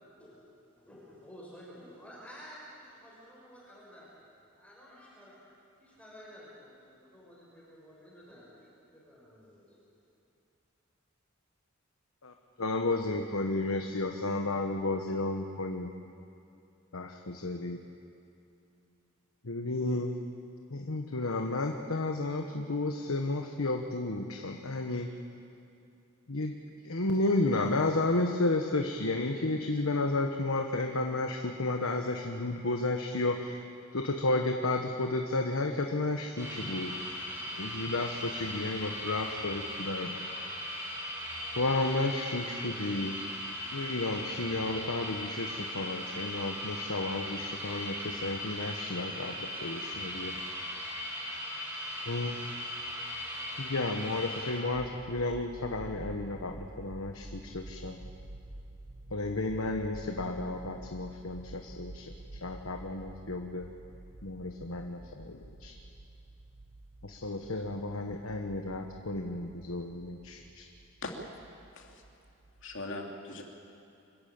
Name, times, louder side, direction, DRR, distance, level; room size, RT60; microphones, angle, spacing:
voice 1, 0.2-4.1 4.3-5.4 5.8-9.8, equal, 5° left, -7 dB, 6.1 m, -52 dB
voice 2, 12.2-15.9 16.9-17.8 19.4-20.1 20.7-25.1 26.3-26.5 26.8-33.6 33.9-36.9 37.5-40.2 41.6-43.2 43.7-50.4 52.1-52.5 53.6-58.0 59.1-62.1 62.4-63.7 64.2-65.7 67.0-70.6, left 2 dB, 80° left, 3 dB, 1.2 m, -32 dB
sound 1, 36.4-54.7, equal, 15° right, 6.6 m, -38 dB
sound 2, 54.7-72.8, right 2 dB, 55° right, 1.0 m, -49 dB
voice 3, 72.6-73.4, left 2 dB, 65° left, 1 dB, 2.9 m, -40 dB
25.5 x 14.5 x 8.9 m, 2.7 s
head